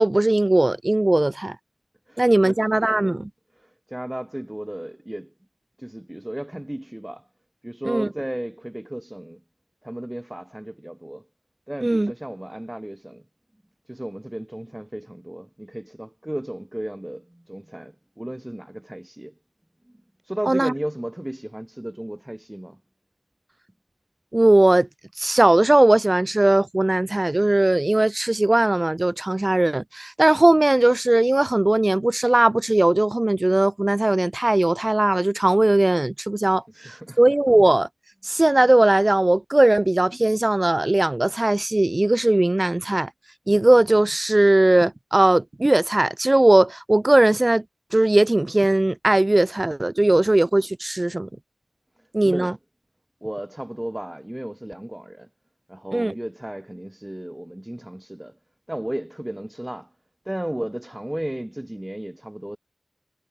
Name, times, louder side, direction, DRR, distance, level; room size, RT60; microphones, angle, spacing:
voice 1, 0.0-1.6 2.2-3.3 7.8-8.1 11.8-12.1 20.5-20.7 24.3-24.9 25.2-37.9 38.2-43.1 43.5-47.6 47.9-51.3 52.1-52.5 55.9-56.1, right 1 dB, 35° right, 2.7 m, -19 dB
voice 2, 2.1-2.7 3.6-5.3 5.8-7.2 7.6-9.4 9.8-11.3 11.7-13.2 13.9-19.3 20.3-22.8 36.8-37.2 52.2-52.5 53.2-55.3 55.7-58.4 58.7-59.9 60.3-62.6, right 1 dB, 15° right, 5.7 m, -34 dB
wide cardioid pair, 50°, 0 cm